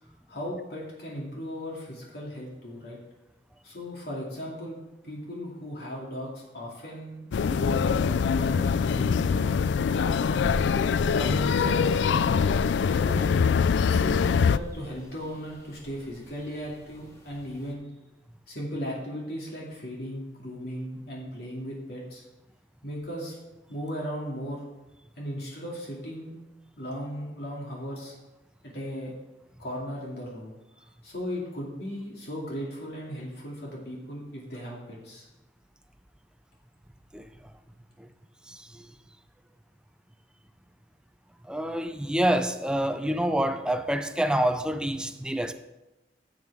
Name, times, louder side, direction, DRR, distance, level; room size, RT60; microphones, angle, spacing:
voice 1, 0.3-3.0 3.6-4.8 5.0-10.2 11.1-12.4 12.9-13.3 13.8-17.9 18.5-22.2 22.8-23.4 23.7-24.6 25.2-26.4 26.8-28.1 28.6-29.1 29.6-30.5 31.0-35.3, equal, 60° left, 2.7 m, -37 dB
sound 1, 7.3-14.6, left 6 dB, 80° left, 0.3 m, -24 dB
sound 2, 10.4-17.7, equal, 20° left, 1.8 m, -42 dB
voice 2, 41.5-45.5, right 1 dB, 5° right, 0.5 m, -27 dB
15.5 x 7.7 x 3.6 m
head